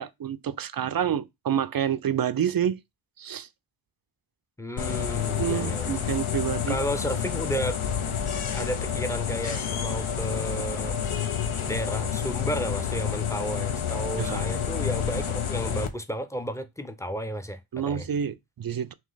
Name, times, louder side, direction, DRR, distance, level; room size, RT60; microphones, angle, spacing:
voice 1, 0.0-2.8 3.2-3.5 5.3-6.8 14.2-14.4 17.7-18.9, right 9 dB, 50° right, 0.4 m, -28 dB
voice 2, 4.6-5.9 6.7-7.8 8.5-11.0 11.7-17.6 17.9-18.1, equal, 5° left, 0.6 m, -32 dB
sound 1, 4.8-15.9, left 8 dB, 75° left, 0.7 m, -29 dB
3.1 x 3.1 x 3.8 m
wide cardioid pair, 50°, 50 cm